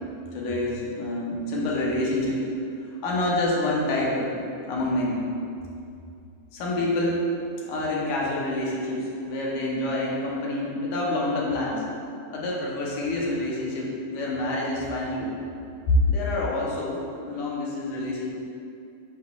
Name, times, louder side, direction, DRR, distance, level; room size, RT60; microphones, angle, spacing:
voice 1, 0.3-2.4 3.0-4.4 4.7-5.2 6.5-7.2 7.6-11.8 12.3-15.3 15.9-18.3, left 2 dB, 75° left, -4 dB, 2.4 m, -27 dB
7.7 x 5.4 x 2.4 m, 2.5 s
omnidirectional pair, 3.5 m